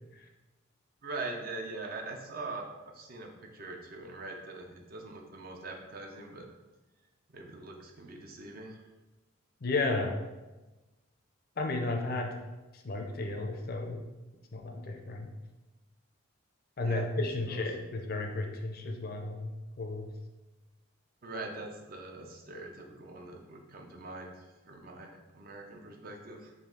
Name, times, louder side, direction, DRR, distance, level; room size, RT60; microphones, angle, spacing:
voice 1, 1.0-2.7 2.9-6.5 7.3-8.8 16.8-17.1 17.5-17.7 21.2-26.5, right 2 dB, 45° right, 2 dB, 0.6 m, -42 dB
voice 2, 9.6-10.2 11.6-12.3 12.8-14.0 14.5-15.3 16.8-20.1, left 2 dB, 45° left, 3 dB, 0.5 m, -33 dB
5.1 x 2.6 x 3.7 m, 1.1 s
head